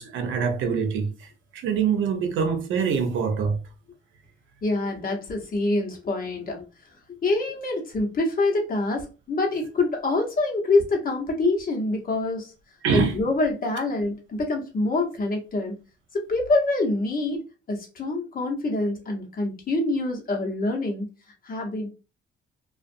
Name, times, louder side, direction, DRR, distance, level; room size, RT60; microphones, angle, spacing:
voice 1, 0.0-3.6 12.8-13.2, right 6 dB, 75° right, 0.7 m, -25 dB
voice 2, 4.6-6.6 7.2-12.5 12.9-15.8 16.1-21.1 21.4-21.9, left 2 dB, 45° left, 1.0 m, -25 dB
2.5 x 2.4 x 2.5 m
cardioid pair, 90°, 20 cm